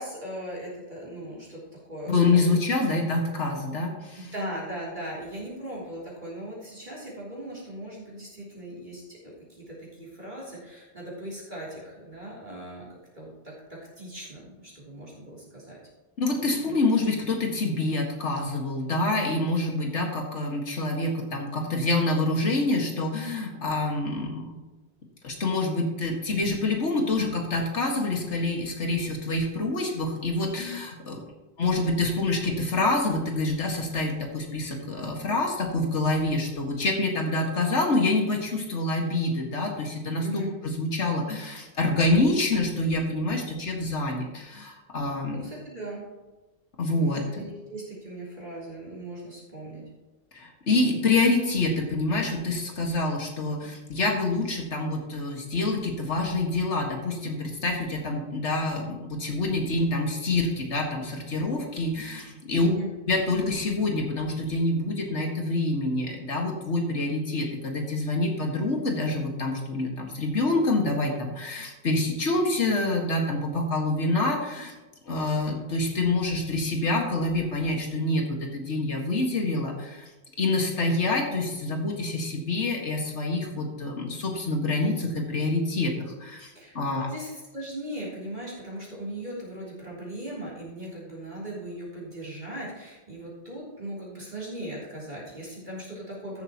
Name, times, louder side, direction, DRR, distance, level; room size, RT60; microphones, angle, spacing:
voice 1, 0.0-2.6 4.1-9.2 9.5-13.3 13.7-15.8 16.6-16.8 40.2-40.5 45.3-46.0 46.9-49.8 62.6-62.9 86.5-96.4, right 1 dB, 40° right, -6 dB, 3.4 m, -38 dB
voice 2, 2.1-4.2 16.2-24.6 25.2-31.2 31.6-40.5 40.8-45.4 46.8-47.4 50.3-62.7 63.1-74.7 75.1-80.1 80.4-87.1, left 2 dB, 80° left, 1 dB, 2.1 m, -26 dB
14.0 x 7.9 x 3.0 m, 1.2 s
omnidirectional pair, 1.2 m